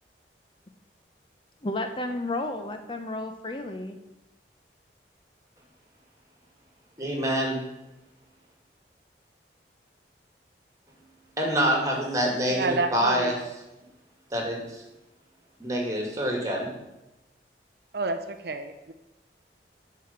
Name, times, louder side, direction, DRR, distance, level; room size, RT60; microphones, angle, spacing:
voice 1, 1.6-4.0, left 2 dB, 25° left, 6 dB, 0.6 m, -32 dB
voice 2, 7.0-7.6 11.4-13.3 14.3-14.8 15.6-16.7, equal, 20° right, 0 dB, 2.1 m, -26 dB
voice 3, 12.5-13.3 17.9-18.9, right 3 dB, 65° right, 8 dB, 0.6 m, -29 dB
9.2 x 4.9 x 7.1 m, 0.97 s
head